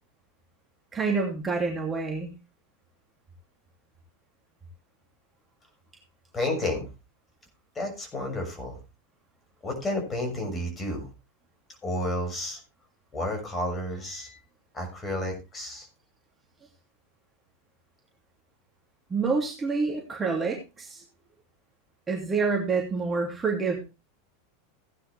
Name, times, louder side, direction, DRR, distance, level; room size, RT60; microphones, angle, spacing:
voice 1, 0.9-2.3 19.1-21.0 22.1-23.8, right 4 dB, 20° right, 0 dB, 2.8 m, -27 dB
voice 2, 6.3-6.9 7.7-8.8 9.6-11.1 11.8-12.6 13.1-14.4 14.7-15.9, left 1 dB, 20° left, 4 dB, 6.4 m, -31 dB
16.0 x 9.9 x 3.4 m, 0.28 s
figure-of-eight pair, 85°, 0 cm